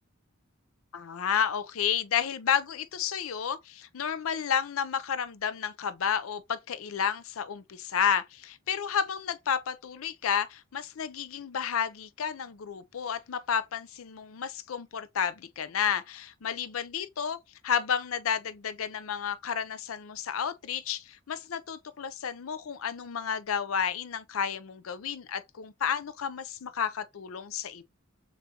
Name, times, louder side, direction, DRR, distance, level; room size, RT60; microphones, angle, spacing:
voice 1, 0.9-17.4 17.6-27.8, left 7 dB, 80° left, 0.5 m, -31 dB
6.8 x 2.5 x 2.8 m
head